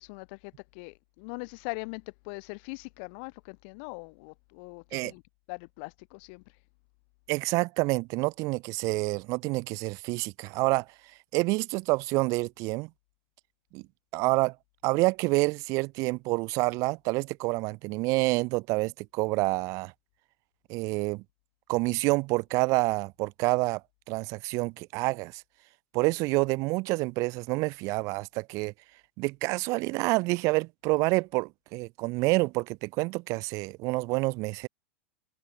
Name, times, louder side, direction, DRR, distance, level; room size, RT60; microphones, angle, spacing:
voice 1, 0.0-5.2 5.5-6.6, left 35 dB, 60° left, 1.8 m, -41 dB
voice 2, 7.3-10.8 11.3-12.9 13.7-13.8 14.1-14.5 14.8-19.9 20.7-21.2 21.7-23.8 24.1-25.4 25.9-28.7 29.2-34.7, right 24 dB, 50° right, 1.6 m, -28 dB
hypercardioid pair, 100°, 7 cm